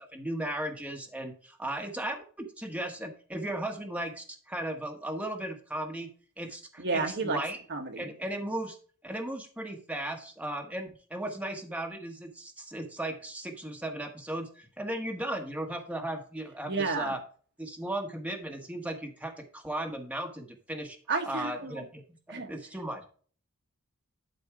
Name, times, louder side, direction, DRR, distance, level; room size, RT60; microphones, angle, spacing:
voice 1, 0.1-6.1 6.4-7.6 8.0-8.8 9.0-17.2 17.6-21.0 21.3-22.0 22.3-23.1, right 1 dB, 5° right, 1.2 m, -36 dB
voice 2, 6.8-7.4 7.7-8.1 16.7-17.2 21.1-21.8 22.3-22.5, right 4 dB, 55° right, 1.3 m, -31 dB
11.5 x 4.3 x 4.7 m
head